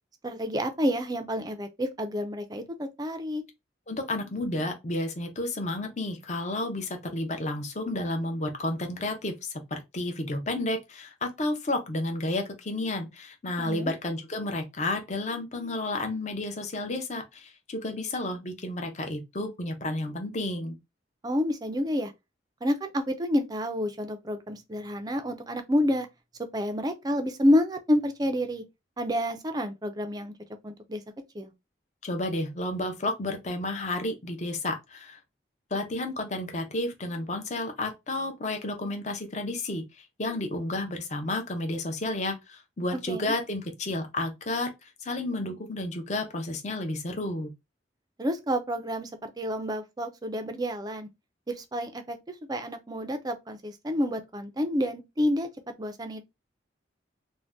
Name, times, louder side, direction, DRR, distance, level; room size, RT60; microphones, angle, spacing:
voice 1, 0.2-3.4 13.6-13.9 21.2-22.1 22.6-26.1 26.4-28.6 29.0-30.3 30.6-31.0 31.3-31.5 43.1-43.3 48.2-51.1 51.5-55.5 55.8-56.2, equal, 20° right, 0.4 m, -29 dB
voice 2, 3.9-20.8 32.0-35.2 35.7-47.5, left 2 dB, 40° left, 0.6 m, -31 dB
2.6 x 2.1 x 3.3 m
head